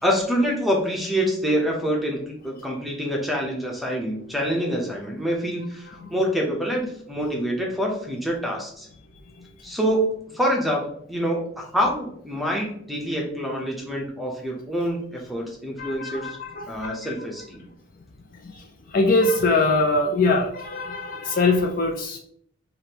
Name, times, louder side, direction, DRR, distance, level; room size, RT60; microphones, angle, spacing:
voice 1, 0.0-8.9 9.6-16.4 16.7-17.6, equal, ahead, -1 dB, 0.6 m, -26 dB
voice 2, 15.8-17.1 18.4-18.5 18.9-22.2, left 3 dB, 40° left, 2 dB, 0.4 m, -22 dB
5.0 x 2.5 x 2.8 m, 0.66 s
head